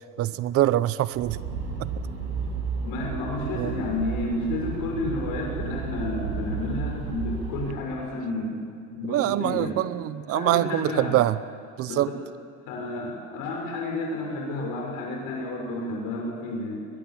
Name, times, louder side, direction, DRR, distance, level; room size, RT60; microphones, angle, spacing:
voice 1, 0.2-1.4 1.8-1.9 3.5-3.8 9.0-11.4 11.8-12.1, right 14 dB, 40° right, 16 dB, 0.7 m, -24 dB
sound 1, 1.1-7.7, right 5 dB, 85° right, 7.9 m, -32 dB
voice 2, 2.8-9.8 10.3-11.2 11.9-12.1 12.7-16.9, left 2 dB, 65° left, 0 dB, 6.0 m, -31 dB
22.0 x 22.0 x 7.5 m, 2.3 s
cardioid pair, 165°, 35 cm